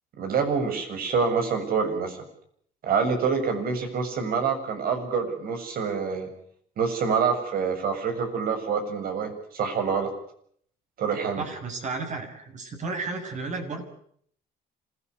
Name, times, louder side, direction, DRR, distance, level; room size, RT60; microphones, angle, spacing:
voice 1, 0.2-2.2 2.8-6.3 6.8-10.1 11.0-11.4, right 5 dB, 60° right, 7 dB, 7.2 m, -26 dB
voice 2, 11.4-13.8, right 3 dB, 45° right, 6 dB, 6.9 m, -33 dB
26.5 x 17.5 x 9.7 m, 0.64 s
cardioid pair, 110°, 17 cm